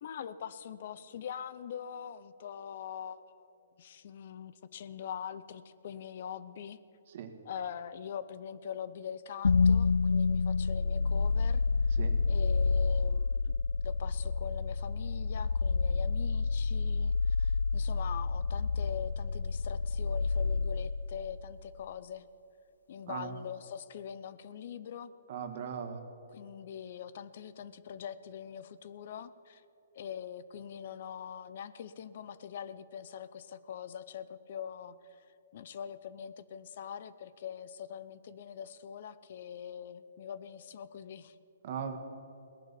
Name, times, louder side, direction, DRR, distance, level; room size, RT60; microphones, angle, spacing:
voice 1, 0.0-6.8 7.4-11.6 12.3-13.5 13.8-22.3 22.9-25.1 26.3-29.6 29.9-35.2 35.5-41.4, left 8 dB, 55° left, 15 dB, 0.7 m, -43 dB
sound 1, 9.4-21.6, left 4 dB, 90° left, 0.4 m, -29 dB
voice 2, 25.3-26.0 41.6-42.0, right 7 dB, 50° right, 6 dB, 1.8 m, -38 dB
18.0 x 11.0 x 6.9 m, 2.8 s
hypercardioid pair, 145°, 0 cm